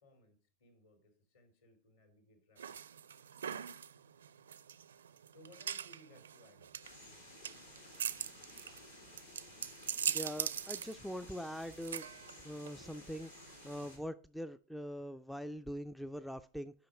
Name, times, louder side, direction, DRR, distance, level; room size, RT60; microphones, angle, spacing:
voice 1, 0.0-2.6 5.3-6.8, equal, 60° left, 5 dB, 2.9 m, -62 dB
sound 1, 2.6-13.9, right 8 dB, 65° right, 0.4 m, -42 dB
sound 2, 6.8-14.0, left 1 dB, 80° left, 3.0 m, -55 dB
voice 2, 10.1-12.1 12.4-16.7, equal, ahead, 13 dB, 0.3 m, -43 dB
8.7 x 5.6 x 4.9 m, 0.41 s
figure-of-eight pair, 90°, 0 cm